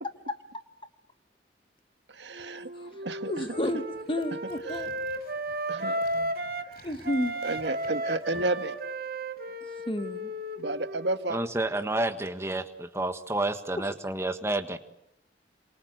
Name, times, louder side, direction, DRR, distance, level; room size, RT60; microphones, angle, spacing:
voice 1, 2.1-2.7 3.0-3.6 4.7-4.9 5.7-6.3 6.7-7.0 7.4-8.8 10.6-11.4, right 2 dB, 80° right, 9 dB, 1.6 m, -32 dB
Wind instrument woodwind instrument, 2.3-6.7 7.0-11.6, right 1 dB, 55° right, 2.1 m, -34 dB
voice 2, 3.2-3.8 4.1-4.9 6.8-7.3 9.9-10.3, left 1 dB, 30° left, 10 dB, 1.4 m, -30 dB
sound 1, 3.6-8.5, left 1 dB, 55° left, 5.0 m, -54 dB
voice 3, 11.3-14.8, right 2 dB, 15° right, 8 dB, 1.5 m, -30 dB
27.5 x 26.0 x 8.1 m, 0.78 s
head